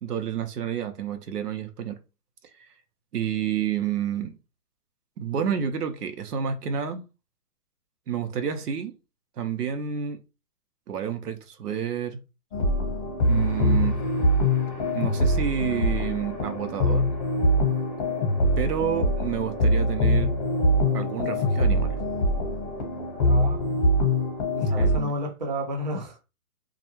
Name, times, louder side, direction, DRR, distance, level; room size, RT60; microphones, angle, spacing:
voice 1, 0.0-2.0 2.6-2.7 3.1-4.3 5.2-7.0 8.1-9.0 9.4-10.2 10.9-12.2 13.3-14.0 14.9-17.1 18.6-20.3 20.9-22.0 24.8-25.1, right 8 dB, 85° right, 0.7 m, -29 dB
sound 1, 12.5-25.0, left 1 dB, 30° left, 0.9 m, -23 dB
voice 2, 23.2-23.8 24.5-26.2, equal, 30° right, 0.4 m, -32 dB
2.3 x 2.1 x 2.9 m
hypercardioid pair, 150°, 46 cm